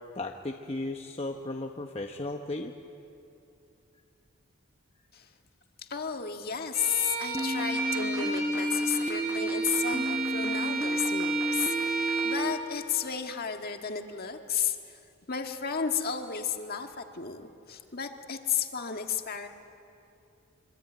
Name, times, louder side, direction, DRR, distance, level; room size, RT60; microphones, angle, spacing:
voice 1, 0.1-2.7, left 2 dB, 25° left, 3 dB, 0.9 m, -35 dB
voice 2, 5.8-15.0 15.3-19.5, left 7 dB, 45° left, 5 dB, 1.7 m, -33 dB
Bowed string instrument, 6.7-12.5, right 4 dB, 45° right, 5.3 m, -33 dB
sound 1, 7.3-12.5, equal, 10° right, 0.8 m, -31 dB
25.0 x 24.5 x 9.2 m, 2.7 s
head